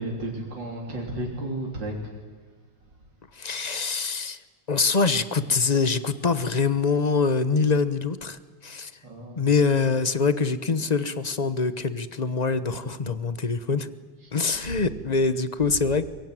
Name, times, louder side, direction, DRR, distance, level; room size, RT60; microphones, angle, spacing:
voice 1, 0.0-2.1 9.0-9.5 14.2-14.3 14.6-14.8 15.6-15.9, right 1 dB, 90° right, -1 dB, 4.1 m, -33 dB
voice 2, 3.3-4.4 4.7-8.9 9.4-13.9 14.3-16.0, left 4 dB, 30° left, 13 dB, 0.9 m, -24 dB
23.0 x 23.0 x 9.2 m, 1.4 s
omnidirectional pair, 1.9 m